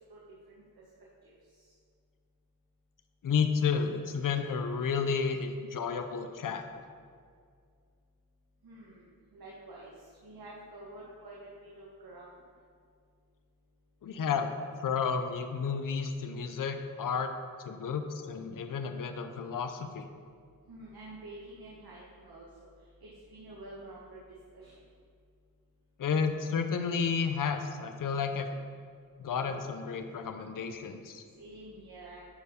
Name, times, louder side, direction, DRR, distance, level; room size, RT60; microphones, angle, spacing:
voice 1, 1.2-1.6 8.6-9.9 10.2-12.3 20.7-22.5 23.0-24.2 24.5-24.8 31.4-32.3, right 2 dB, 90° right, -5 dB, 1.6 m, -48 dB
voice 2, 3.2-6.6 14.0-14.5 14.8-17.3 17.6-20.1 26.0-28.6 29.2-31.2, left 6 dB, 60° left, 7 dB, 0.7 m, -31 dB
11.5 x 4.7 x 5.1 m, 2.1 s
wide cardioid pair, 155°, 36 cm